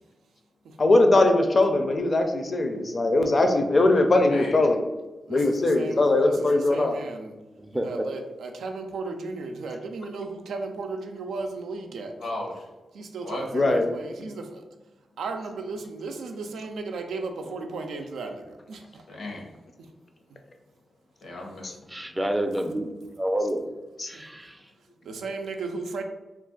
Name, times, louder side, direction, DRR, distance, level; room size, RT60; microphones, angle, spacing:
voice 1, 0.8-4.8 5.3-6.9 13.5-13.9 24.0-24.1, left 2 dB, 50° left, 5 dB, 0.5 m, -20 dB
voice 2, 4.3-4.6 12.2-12.6 13.2-13.5 14.2-14.3 19.1-19.5 21.2-21.7, left 2 dB, 80° left, 0 dB, 0.8 m, -35 dB
voice 3, 5.3-7.4 7.7-12.1 12.9-14.6 15.2-19.0 19.8-19.9 24.1-24.2 25.0-26.0, right 3 dB, 85° right, 4 dB, 0.3 m, -35 dB
voice 4, 7.6-8.0 21.9-22.9 23.2-23.6 24.1-24.6, right 1 dB, 15° right, 5 dB, 0.4 m, -28 dB
2.4 x 2.3 x 3.7 m, 1.1 s
cardioid pair, 50°, 0 cm